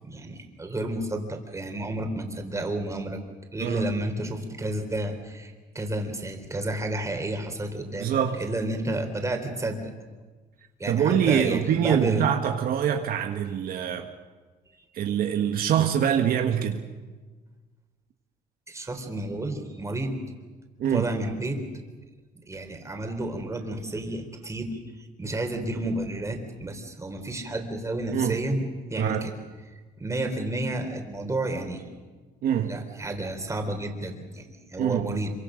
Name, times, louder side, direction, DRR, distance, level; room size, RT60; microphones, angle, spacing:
voice 1, 0.0-3.2 3.5-9.9 10.8-12.3 14.7-14.9 18.7-20.1 20.9-21.6 22.5-29.3 30.0-31.9 32.6-35.3, right 1 dB, 15° right, 3.9 m, -31 dB
voice 2, 8.0-8.4 10.9-14.1 14.9-16.8 20.8-21.1 28.1-28.4 29.0-29.3 32.4-32.8 34.8-35.1, right 9 dB, 60° right, 1.6 m, -24 dB
26.5 x 24.5 x 6.5 m
cardioid pair, 110°, 17 cm